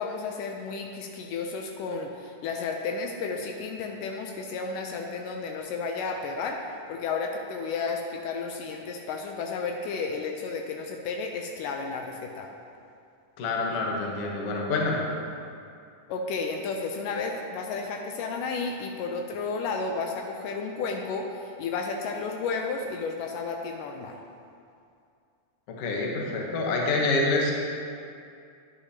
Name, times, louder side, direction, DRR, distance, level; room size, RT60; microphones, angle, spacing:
voice 1, 0.0-6.6 6.9-12.5 16.1-24.2, left 4 dB, 80° left, 2 dB, 2.1 m, -32 dB
voice 2, 13.4-15.0 25.7-27.5, left 2 dB, 60° left, -1 dB, 1.6 m, -27 dB
9.9 x 9.9 x 2.8 m, 2.4 s
omnidirectional pair, 3.9 m